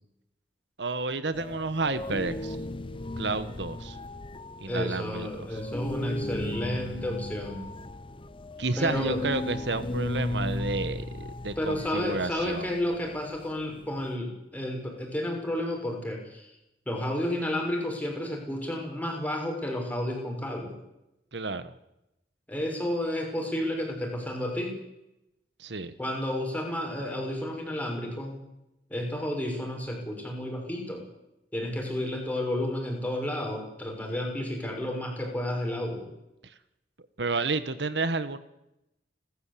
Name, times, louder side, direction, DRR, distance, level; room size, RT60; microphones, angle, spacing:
voice 1, 0.8-2.6 3.2-4.0 4.6-5.6 8.6-12.7 21.3-21.7 25.6-25.9 36.4-36.5 37.2-38.4, right 3 dB, 70° right, 13 dB, 1.3 m, -31 dB
sound 1, 1.3-14.2, left 1 dB, 30° left, 0.9 m, -36 dB
voice 2, 4.7-7.6 8.8-9.2 11.6-16.5 16.9-20.8 22.5-24.8 26.0-28.4 28.9-31.0 31.5-36.1, left 1 dB, 10° left, 1 dB, 6.4 m, -31 dB
30.0 x 13.5 x 8.5 m, 0.88 s
head